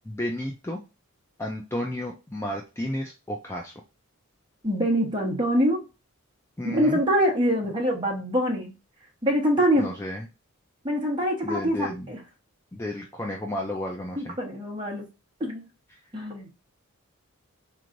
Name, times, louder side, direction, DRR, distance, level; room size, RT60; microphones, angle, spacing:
voice 1, 0.1-0.8 1.4-3.7 6.6-7.0 9.8-10.2 11.4-12.1 12.7-14.4 15.9-16.0, left 1 dB, 10° left, 1 dB, 0.4 m, -32 dB
voice 2, 4.6-5.8 6.6-8.7 9.2-9.9 10.8-12.2 14.2-15.1 15.4-15.6 16.1-16.5, equal, 20° right, -1 dB, 1.2 m, -24 dB
4.2 x 3.1 x 2.5 m, 0.28 s
head